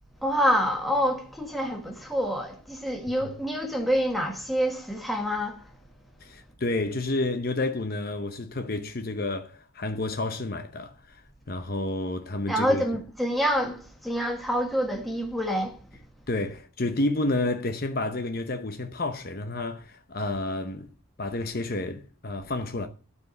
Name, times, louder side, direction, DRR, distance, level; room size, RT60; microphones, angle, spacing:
voice 1, 0.2-5.7 12.5-15.8, equal, ahead, 1.7 m, -27 dB
voice 2, 6.2-12.8 16.3-20.9 21.2-22.9, left 2 dB, 45° left, 0.8 m, -30 dB
12.5 x 4.8 x 8.0 m
head